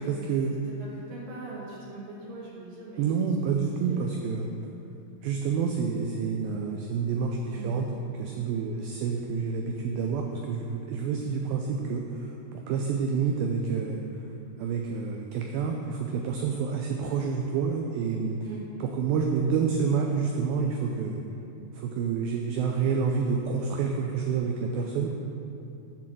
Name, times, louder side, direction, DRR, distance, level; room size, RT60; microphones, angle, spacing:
voice 1, 0.1-0.5 3.0-4.5 5.2-7.9 8.2-14.0 14.6-18.4 18.8-21.2 21.7-25.2, right 5 dB, 80° right, 2 dB, 2.1 m, -28 dB
voice 2, 0.7-3.2 3.6-4.1 7.5-7.8 11.1-11.3 18.4-18.7, right 2 dB, 65° right, -5 dB, 2.8 m, -42 dB
11.0 x 4.0 x 7.5 m, 2.8 s
omnidirectional pair, 4.7 m